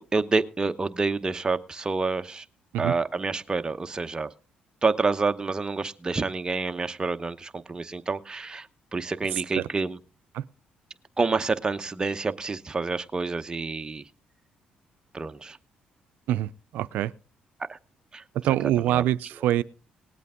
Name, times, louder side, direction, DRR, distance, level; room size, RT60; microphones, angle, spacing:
voice 1, 0.1-2.4 2.8-4.3 4.8-8.7 8.9-10.0 11.2-14.0 15.1-15.6 17.7-17.8 18.1-18.5 18.9-19.0, right 4 dB, 25° right, 0.9 m, -28 dB
voice 2, 9.3-9.7 10.3-10.4 16.3-17.1 18.3-19.6, right 13 dB, 85° right, 0.5 m, -25 dB
19.0 x 8.3 x 3.7 m
cardioid pair, 80°, 3 cm